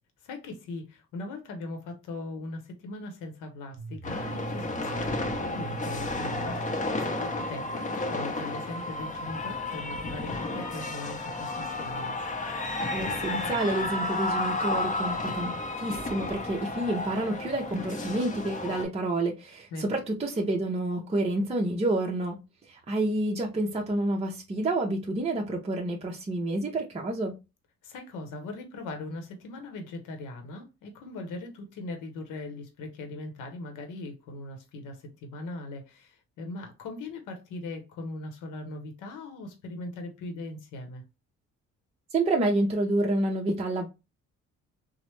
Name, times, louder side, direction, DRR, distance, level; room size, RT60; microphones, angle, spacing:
voice 1, 0.2-12.1 19.7-19.9 27.8-41.0, left 2 dB, 90° left, 0.8 m, -40 dB
sound 1, 3.8-9.8, right 3 dB, 90° right, 0.5 m, -42 dB
sound 2, 4.0-18.8, left 2 dB, 25° left, 0.7 m, -32 dB
voice 2, 12.9-22.4 22.7-27.4 42.1-43.9, right 2 dB, 20° right, 0.6 m, -29 dB
3.0 x 2.0 x 3.0 m
cardioid pair, 90°, 30 cm